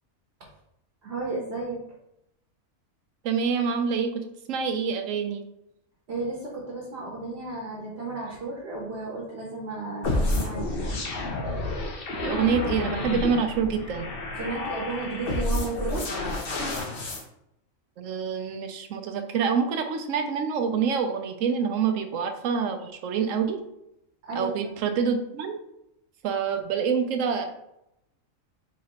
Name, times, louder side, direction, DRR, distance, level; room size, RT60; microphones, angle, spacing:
voice 1, 1.0-1.8 6.1-11.0 14.4-16.1 24.2-24.5, right 3 dB, 55° right, -3 dB, 1.1 m, -33 dB
voice 2, 3.2-4.2 4.5-5.4 12.2-14.1 18.0-23.6 24.3-25.6 26.2-27.5, right 6 dB, 75° right, 6 dB, 0.9 m, -26 dB
sound 1, 10.0-17.2, left 2 dB, 50° left, 0.9 m, -30 dB
4.8 x 3.0 x 2.9 m, 0.82 s
omnidirectional pair, 1.4 m